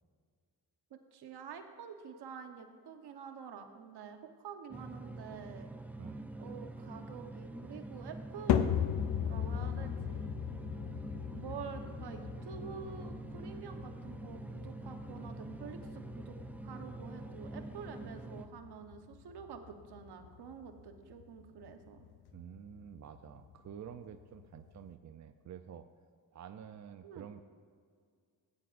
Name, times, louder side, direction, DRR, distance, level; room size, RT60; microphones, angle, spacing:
voice 1, 0.9-5.7 6.4-8.7 9.2-10.2 11.3-22.0 27.0-27.3, right 7 dB, 75° right, 6 dB, 1.1 m, -48 dB
sound 1, 4.7-18.5, right 2 dB, 5° right, 0.6 m, -46 dB
voice 2, 6.0-6.3 18.0-18.1 22.3-25.9 26.3-27.4, right 8 dB, 45° right, 8 dB, 0.5 m, -49 dB
sound 2, 8.5-24.9, left 9 dB, 75° left, 0.7 m, -39 dB
16.0 x 9.3 x 2.5 m, 2.1 s
cardioid pair, 65°, 39 cm